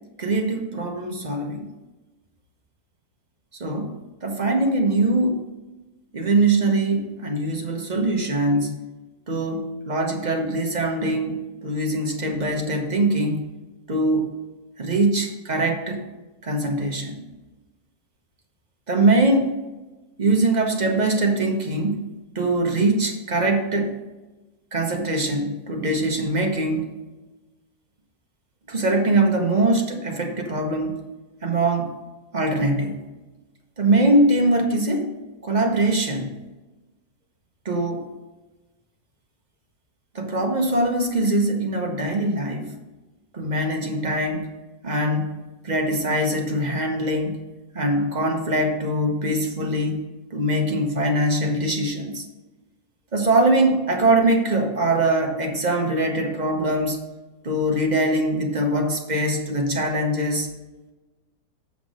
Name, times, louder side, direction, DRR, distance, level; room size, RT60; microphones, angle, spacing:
voice 1, 0.2-1.7 3.6-5.4 6.1-8.7 9.3-13.5 13.9-14.3 14.8-16.0 16.4-17.3 18.9-19.5 20.2-22.1 22.3-24.0 24.7-26.9 28.7-31.0 31.4-32.0 32.3-33.0 33.8-35.1 35.4-36.4 37.6-38.1 40.1-42.7 43.3-44.6 44.8-47.5 47.7-50.0 50.3-52.2 53.1-57.0 57.4-60.5, right 2 dB, 30° right, 2 dB, 0.9 m, -22 dB
7.2 x 5.9 x 4.9 m, 1.1 s
omnidirectional pair, 1.8 m